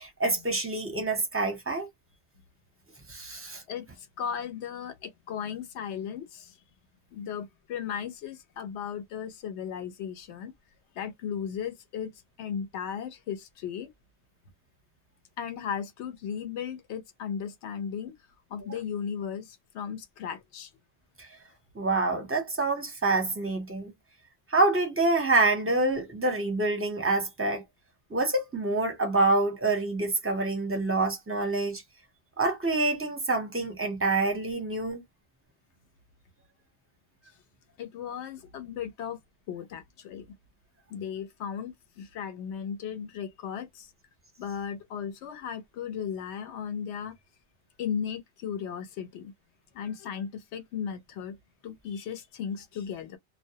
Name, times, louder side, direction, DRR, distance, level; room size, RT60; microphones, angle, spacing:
voice 1, 0.0-1.9 3.1-3.6 21.8-23.9 24.5-27.6 28.1-31.8 32.4-35.0, right 2 dB, 15° right, 0.5 m, -26 dB
voice 2, 3.7-6.5 7.1-10.5 10.9-12.1 12.4-13.9 15.4-18.1 18.5-20.7 37.8-39.2 39.5-40.3 40.9-43.9 44.4-47.1 47.8-49.3 49.7-51.4 51.6-53.2, left 7 dB, 80° left, 0.9 m, -36 dB
2.2 x 2.1 x 2.7 m
omnidirectional pair, 1.2 m